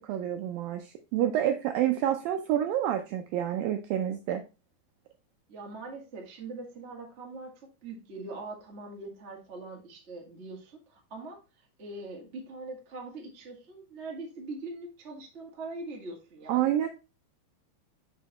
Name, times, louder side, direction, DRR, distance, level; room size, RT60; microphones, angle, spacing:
voice 1, 0.0-4.4 16.5-16.9, right 11 dB, 80° right, 6 dB, 2.0 m, -28 dB
voice 2, 5.5-7.5 7.8-16.7, right 3 dB, 45° right, -1 dB, 0.8 m, -42 dB
6.4 x 6.4 x 2.9 m, 0.28 s
omnidirectional pair, 4.6 m